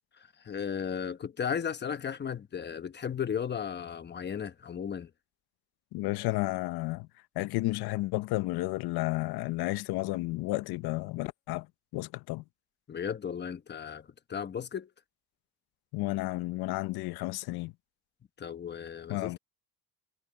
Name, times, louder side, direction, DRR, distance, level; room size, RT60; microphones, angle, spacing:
voice 1, 0.4-5.1 12.9-14.9 18.4-19.4, left 7 dB, 30° left, 1.1 m, -35 dB
voice 2, 5.9-7.1 7.4-11.7 11.9-12.4 15.9-17.7 19.1-19.4, left 19 dB, 80° left, 0.8 m, -32 dB
cardioid pair, 135°, 37 cm